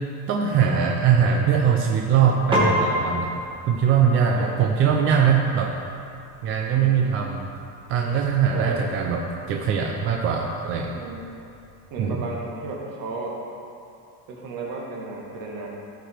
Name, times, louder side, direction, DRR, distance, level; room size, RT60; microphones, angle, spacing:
voice 1, 0.3-3.3 3.7-5.7 6.4-7.5 7.9-9.2 9.5-10.9 12.0-12.2, right 7 dB, 30° right, 0 dB, 0.4 m, -21 dB
Piano, 2.5-12.1, equal, 10° right, 1.3 m, -32 dB
voice 2, 4.3-4.7 6.7-7.1 8.5-8.9 10.9-11.3 11.9-13.4 14.3-15.7, right 3 dB, 45° right, -2 dB, 1.7 m, -34 dB
14.5 x 5.0 x 4.4 m, 2.6 s
cardioid pair, 170°, 45 cm